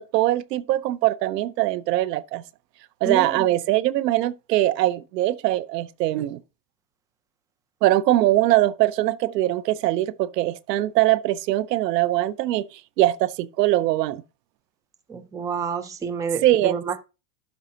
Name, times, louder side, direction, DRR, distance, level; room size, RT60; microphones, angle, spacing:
voice 1, 0.0-2.4 3.0-6.4 7.8-12.6 13.0-14.2 16.4-16.7, right 15 dB, 90° right, 0.7 m, -22 dB
voice 2, 3.0-3.5 15.1-17.0, right 5 dB, 10° right, 0.4 m, -29 dB
12.5 x 5.2 x 2.8 m
supercardioid pair, 130°, 47 cm